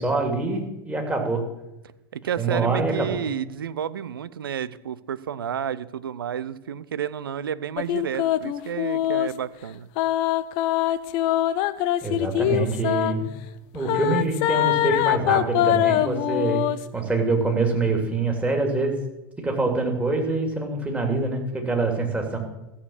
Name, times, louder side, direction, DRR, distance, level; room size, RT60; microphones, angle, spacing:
voice 1, 0.0-1.4 2.4-3.2 12.0-13.2 13.7-16.7 16.9-19.0 19.4-22.4, right 3 dB, 10° right, 2 dB, 2.9 m, -25 dB
voice 2, 2.1-9.9, right 9 dB, 70° right, 16 dB, 0.6 m, -31 dB
sound 1, 7.8-9.3 10.0-13.1 13.8-16.8, left 13 dB, 45° left, 0.7 m, -23 dB
14.0 x 7.3 x 7.3 m, 0.96 s
figure-of-eight pair, 85°, 12 cm